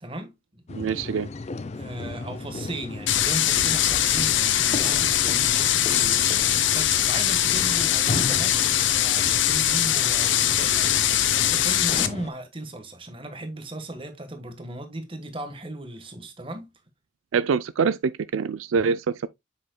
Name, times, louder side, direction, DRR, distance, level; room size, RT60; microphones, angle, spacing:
voice 1, 0.0-0.6 1.7-16.7, right 1 dB, 25° right, 1.4 m, -37 dB
sound 1, 0.7-12.3, left 3 dB, 35° left, 0.4 m, -35 dB
voice 2, 0.7-1.3 17.3-19.3, right 5 dB, 90° right, 0.4 m, -25 dB
sound 2, 3.1-12.1, left 11 dB, 70° left, 0.7 m, -22 dB
7.5 x 6.5 x 2.2 m
head